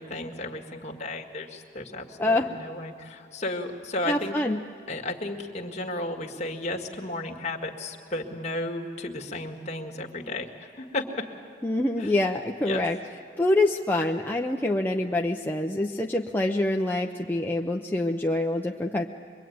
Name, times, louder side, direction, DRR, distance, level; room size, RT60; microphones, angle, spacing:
voice 1, 0.0-4.4 4.9-11.2 12.0-12.2 12.6-12.9, left 2 dB, 40° left, 2 dB, 2.0 m, -34 dB
voice 2, 2.2-2.5 4.1-4.6 11.6-13.0 13.4-19.0, left 1 dB, 10° left, 1 dB, 0.7 m, -25 dB
23.5 x 23.5 x 9.4 m, 2.2 s
head